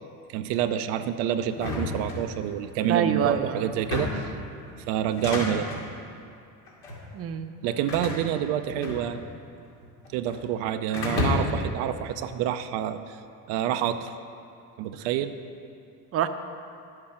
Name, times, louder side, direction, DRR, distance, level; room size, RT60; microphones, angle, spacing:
voice 1, 0.3-4.3 4.9-5.7 7.6-9.2 10.1-13.2 13.5-14.1 14.8-15.3, right 10 dB, 80° right, 8 dB, 0.6 m, -28 dB
sound 1, 1.5-2.7 3.7-4.4 5.0-5.9 6.7-7.0 7.9-9.4 9.7-10.4 10.9-11.7, left 2 dB, 85° left, 2.3 m, -31 dB
voice 2, 2.9-3.6 7.1-7.5 16.1-16.3, right 8 dB, 35° right, 8 dB, 0.7 m, -26 dB
9.8 x 7.7 x 5.8 m, 2.5 s
supercardioid pair, 95°, 39 cm